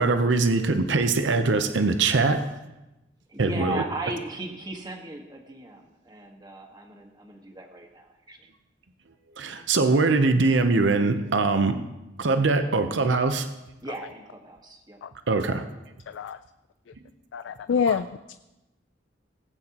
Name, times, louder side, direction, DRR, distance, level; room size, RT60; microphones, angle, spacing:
voice 1, 0.0-2.5 3.4-3.8 9.4-11.8 12.2-13.5 15.3-15.6, right 3 dB, 75° right, 8 dB, 0.7 m, -22 dB
voice 2, 3.3-8.4 13.8-15.0, right 2 dB, 25° right, 1 dB, 1.5 m, -37 dB
voice 3, 16.1-16.4 17.3-18.3, left 6 dB, 75° left, 11 dB, 0.3 m, -27 dB
18.5 x 8.8 x 2.9 m, 0.98 s
head